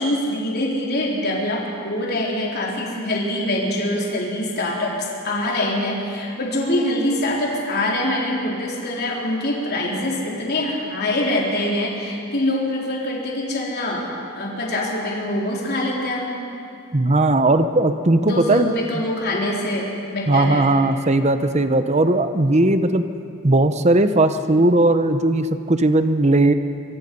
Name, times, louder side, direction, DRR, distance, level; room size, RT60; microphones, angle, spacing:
voice 1, 0.0-14.1 14.3-16.3 18.2-20.7, left 1 dB, 45° left, -3 dB, 3.9 m, -24 dB
voice 2, 16.9-19.0 20.3-23.0 23.4-26.5, right 2 dB, 30° right, 9 dB, 0.9 m, -18 dB
24.0 x 24.0 x 5.4 m, 2.6 s
head